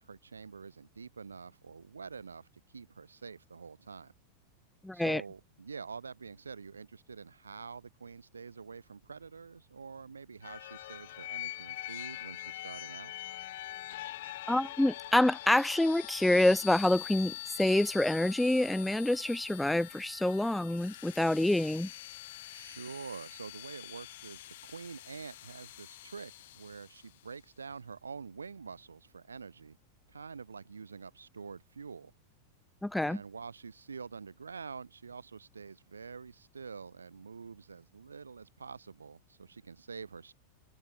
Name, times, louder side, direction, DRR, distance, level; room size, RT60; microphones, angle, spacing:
voice 1, 0.0-4.1 4.9-13.1 22.5-29.8 30.1-32.1 33.0-40.3, right 5 dB, 75° right, 5.2 m, -46 dB
voice 2, 4.8-5.2 14.5-21.9 32.8-33.2, left 1 dB, 5° left, 0.4 m, -27 dB
sound 1, 10.4-27.2, left 15 dB, 55° left, 0.8 m, -44 dB
open air
figure-of-eight pair, 90°, 0 cm